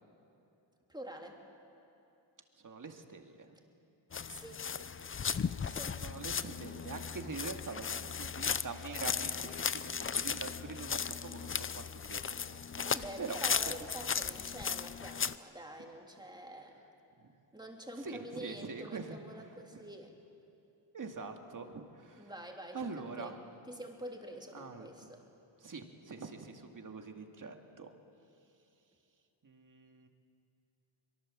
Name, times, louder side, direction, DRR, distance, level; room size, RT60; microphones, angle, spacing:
voice 1, 0.9-1.4 4.3-4.6 5.6-6.0 12.8-16.8 17.5-20.1 22.2-22.8 23.2-23.4 23.7-25.2, right 1 dB, 10° right, 1 dB, 3.2 m, -47 dB
voice 2, 2.6-3.6 6.0-13.4 13.6-13.8 17.2-17.3 18.0-19.2 19.7-19.8 20.9-22.3 22.7-23.4 24.5-25.1 25.6-27.9 29.4-30.1, right 4 dB, 40° right, 4 dB, 2.2 m, -44 dB
sound 1, 4.1-15.3, left 6 dB, 30° left, 0.5 m, -36 dB
24.0 x 23.0 x 7.6 m, 2.8 s
cardioid pair, 85°, 47 cm